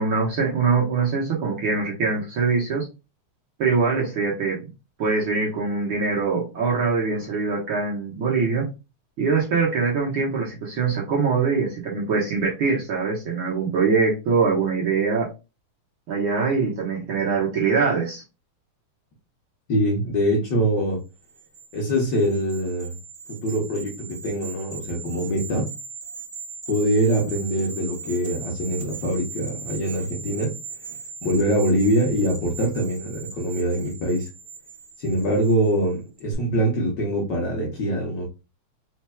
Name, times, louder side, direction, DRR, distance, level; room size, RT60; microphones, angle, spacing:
voice 1, 0.0-2.9 3.6-4.6 5.0-8.7 9.2-15.3 16.1-18.2, right 4 dB, 60° right, 1.4 m, -23 dB
voice 2, 19.7-21.0 21.7-23.0 23.3-25.7 26.7-30.6 31.2-34.3 35.0-38.3, equal, 85° left, 0.9 m, -23 dB
sound 1, 21.2-35.8 36.2-36.3, right 5 dB, 40° right, 2.1 m, -39 dB
4.5 x 3.9 x 2.3 m
omnidirectional pair, 3.6 m